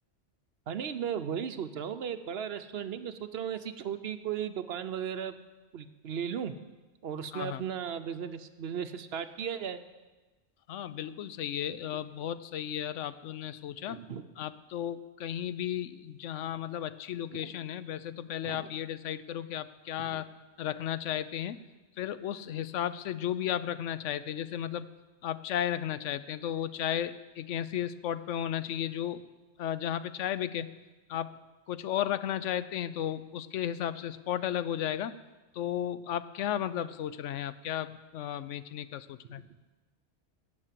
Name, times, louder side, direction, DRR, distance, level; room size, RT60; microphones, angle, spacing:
voice 1, 0.7-5.4 5.7-6.5 7.0-9.8 13.9-14.3 17.3-17.5 18.4-18.7 20.0-20.2, right 8 dB, 60° right, 10 dB, 0.9 m, -36 dB
voice 2, 7.3-7.6 10.7-14.0 14.4-20.3 20.6-21.6 22.0-24.9 25.2-29.2 29.6-30.7 31.1-31.3 31.7-35.1 35.5-39.4, left 10 dB, 90° left, 15 dB, 1.0 m, -34 dB
17.0 x 6.5 x 7.5 m, 1.2 s
omnidirectional pair, 1.2 m